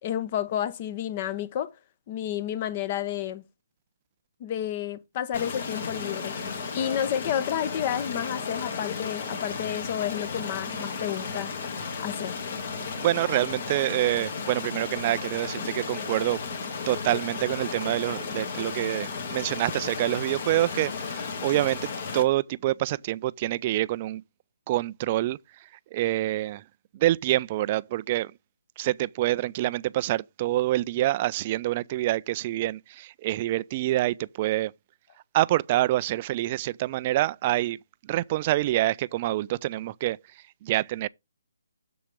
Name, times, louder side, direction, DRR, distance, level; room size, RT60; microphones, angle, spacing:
voice 1, 0.0-1.8 2.1-3.4 4.4-6.4 6.7-11.5 12.0-12.4, left 10 dB, 30° left, 0.9 m, -30 dB
Stream, 5.3-22.2, left 5 dB, 45° left, 2.0 m, -34 dB
voice 2, 13.0-16.4 16.9-24.2 24.7-26.6 26.9-28.3 28.8-34.7 35.3-37.8 38.0-41.1, right 15 dB, 30° right, 0.3 m, -26 dB
7.2 x 7.0 x 3.5 m
figure-of-eight pair, 145°, 0 cm